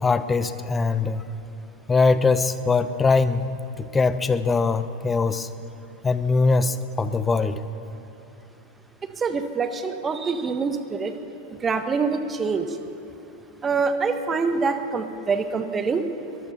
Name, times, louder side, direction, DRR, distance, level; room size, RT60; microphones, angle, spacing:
voice 1, 0.0-1.2 1.9-3.5 3.8-5.5 6.0-7.6, left 4 dB, 15° left, 13 dB, 0.9 m, -22 dB
voice 2, 9.2-11.1 11.6-12.8 13.6-16.0, right 4 dB, 20° right, 8 dB, 1.5 m, -25 dB
23.0 x 20.0 x 5.7 m, 2.9 s
figure-of-eight pair, 90°, 0 cm